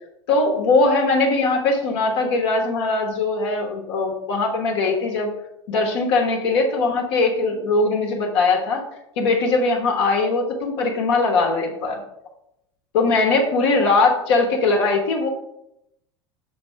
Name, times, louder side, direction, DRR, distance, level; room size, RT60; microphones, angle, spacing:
voice 1, 0.3-5.3 5.7-8.8 9.2-12.0 12.9-15.3, left 3 dB, 60° left, 0 dB, 1.1 m, -20 dB
5.9 x 2.9 x 5.6 m, 0.82 s
figure-of-eight pair, 80°, 16 cm